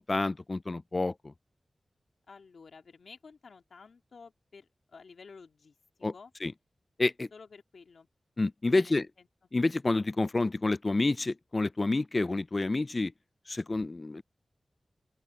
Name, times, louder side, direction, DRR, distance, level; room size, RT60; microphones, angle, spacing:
voice 1, 0.0-1.3 6.0-6.1 6.4-6.5 7.0-7.3 8.4-9.1 9.5-13.1 13.5-14.2, left 2 dB, 35° left, 0.4 m, -29 dB
voice 2, 2.3-6.3 7.3-8.1 8.7-9.3, left 5 dB, 90° left, 2.3 m, -52 dB
open air
wide cardioid pair, 90°, 0 cm